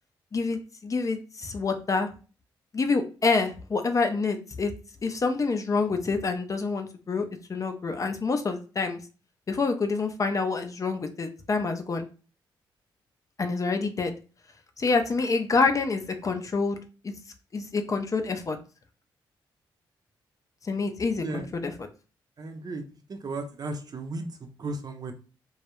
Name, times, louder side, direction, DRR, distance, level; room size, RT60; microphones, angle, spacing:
voice 1, 0.3-2.1 2.7-4.7 5.0-9.0 9.5-12.1 13.4-14.1 14.8-16.8 17.0-17.1 17.5-18.6 20.6-21.9, left 4 dB, 35° left, 6 dB, 0.4 m, -27 dB
voice 2, 22.4-22.8 23.1-24.3 24.6-25.1, right 2 dB, 45° right, 5 dB, 0.5 m, -34 dB
2.2 x 2.0 x 2.9 m, 0.35 s
supercardioid pair, 55°, 9 cm